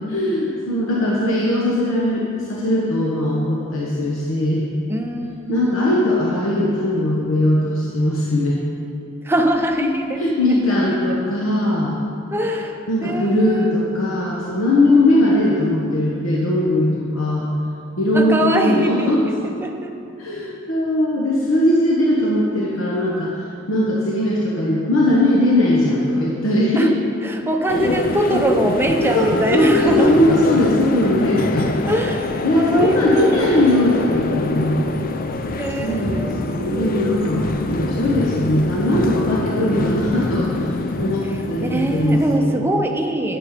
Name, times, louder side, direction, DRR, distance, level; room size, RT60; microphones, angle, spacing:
voice 1, 0.1-4.6 5.5-8.6 10.2-12.0 12.9-17.5 18.0-19.2 20.2-23.3 23.7-26.9 27.7-27.8 29.1-31.8 32.4-34.9 35.8-40.7 41.0-42.5, left 1 dB, 85° left, -4 dB, 1.2 m, -19 dB
voice 2, 4.9-5.9 9.2-10.8 11.1-11.2 12.3-13.8 18.1-19.9 26.8-26.9 27.2-30.2 31.9-33.6 35.6-36.9 41.2-43.4, right 1 dB, 10° right, 3 dB, 0.7 m, -22 dB
sound 1, 27.7-42.4, left 2 dB, 45° left, 0.5 m, -24 dB
9.9 x 7.7 x 5.0 m, 2.6 s
head